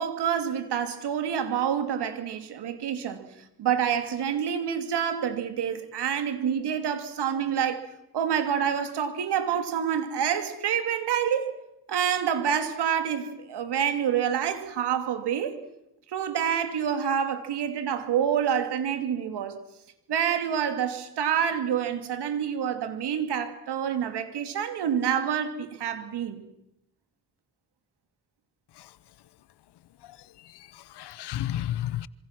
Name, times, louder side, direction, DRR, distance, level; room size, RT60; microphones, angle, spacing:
voice 1, 0.0-3.3 3.6-7.9 8.1-11.6 11.9-15.6 16.1-19.6 20.1-26.4, right 8 dB, 90° right, 3.0 m, -27 dB
voice 2, 30.1-32.1, left 12 dB, 85° left, 0.9 m, -33 dB
27.0 x 26.5 x 6.2 m
cardioid pair, 105°, 39 cm